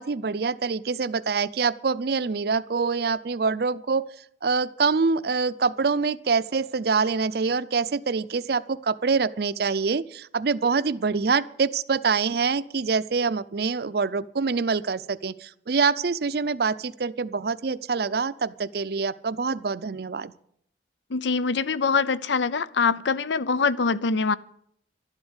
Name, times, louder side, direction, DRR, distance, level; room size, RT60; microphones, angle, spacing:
voice 1, 0.0-4.1 4.4-20.3, right 4 dB, 55° right, 16 dB, 0.5 m, -25 dB
voice 2, 21.1-24.3, left 5 dB, 80° left, 17 dB, 0.6 m, -24 dB
12.5 x 11.5 x 8.1 m, 0.69 s
head